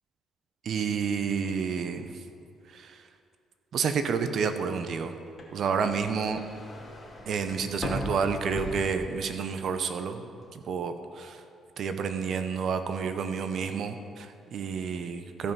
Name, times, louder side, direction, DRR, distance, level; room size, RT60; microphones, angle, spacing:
voice 1, 0.6-2.1 2.7-2.9 3.7-5.2 5.5-6.4 7.3-11.4 11.8-15.5, right 6 dB, 65° right, 9 dB, 0.8 m, -30 dB
sound 1, 5.3-9.5 9.9-10.4, left 1 dB, 25° left, 2.3 m, -38 dB
14.5 x 5.6 x 5.5 m, 2.4 s
cardioid pair, 90°, 0 cm